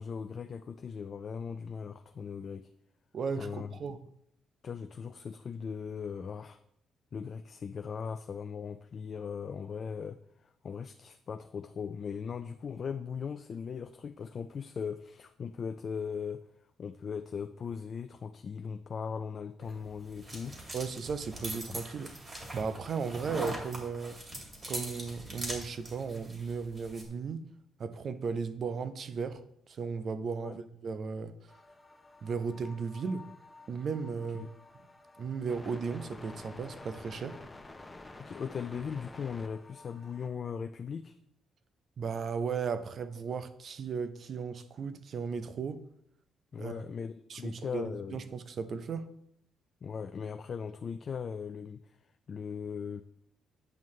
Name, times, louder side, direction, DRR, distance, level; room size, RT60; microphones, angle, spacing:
voice 1, 0.0-2.7 3.4-3.7 4.6-6.6 7.1-16.4 16.8-20.6 21.5-21.8 30.4-30.6 34.4-34.5 38.2-41.1 46.5-48.2 49.8-52.0 52.3-53.0, left 6 dB, 50° left, 0.4 m, -39 dB
voice 2, 3.1-4.0 20.7-22.1 22.5-24.2 24.7-27.5 27.8-29.4 29.7-31.5 32.2-33.3 33.7-34.5 35.2-37.4 42.0-45.8 46.6-46.8 47.3-49.1, right 5 dB, 50° right, 0.6 m, -36 dB
sound 1, 19.6-27.1, right 1 dB, 35° right, 2.4 m, -42 dB
sound 2, 31.5-40.3, left 2 dB, 15° left, 0.8 m, -51 dB
9.1 x 5.5 x 3.2 m
cardioid pair, 90°, 0 cm